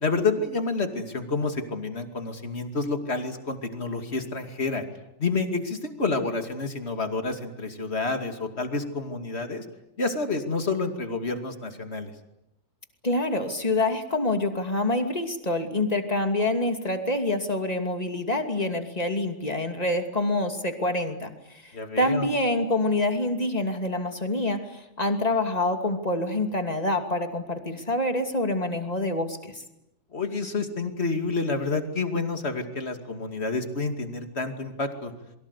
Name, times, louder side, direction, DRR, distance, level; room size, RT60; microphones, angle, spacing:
voice 1, 0.0-4.8 5.2-9.7 10.0-12.1 21.7-22.3 30.1-35.1, left 3 dB, 40° left, 6 dB, 2.7 m, -29 dB
voice 2, 13.0-21.3 21.6-21.7 22.0-29.6, left 2 dB, 25° left, 6 dB, 2.7 m, -26 dB
28.0 x 23.0 x 8.3 m, 0.86 s
omnidirectional pair, 1.7 m